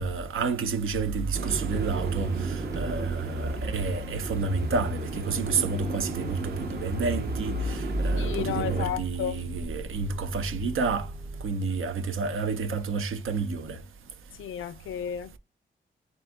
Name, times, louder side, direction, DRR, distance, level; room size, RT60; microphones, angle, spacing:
voice 1, 0.0-11.1 11.4-13.8, right 4 dB, 90° right, 0.7 m, -30 dB
sound 1, 1.3-8.9, right 4 dB, 55° right, 0.7 m, -37 dB
sound 2, 1.8-11.5, right 1 dB, 20° right, 0.4 m, -34 dB
voice 2, 8.1-9.4 14.4-15.4, left 9 dB, 85° left, 0.4 m, -33 dB
3.8 x 2.7 x 3.5 m
wide cardioid pair, 130°, 20 cm